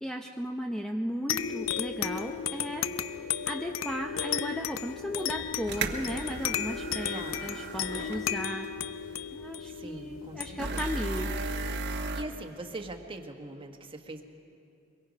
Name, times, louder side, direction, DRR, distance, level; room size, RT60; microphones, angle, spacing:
voice 1, 0.0-2.9 3.5-8.7 9.3-11.3, equal, 5° left, 2 dB, 0.6 m, -35 dB
sound 1, 1.3-12.4, left 8 dB, 70° left, 0.6 m, -35 dB
sound 2, 5.2-5.3 5.7-8.3 8.6-8.7 10.6-12.2, right 3 dB, 55° right, 1.3 m, -35 dB
voice 2, 7.1-7.5 9.6-10.8 11.9-14.2, right 2 dB, 25° right, 4 dB, 1.4 m, -42 dB
23.5 x 23.0 x 5.2 m, 2.7 s
head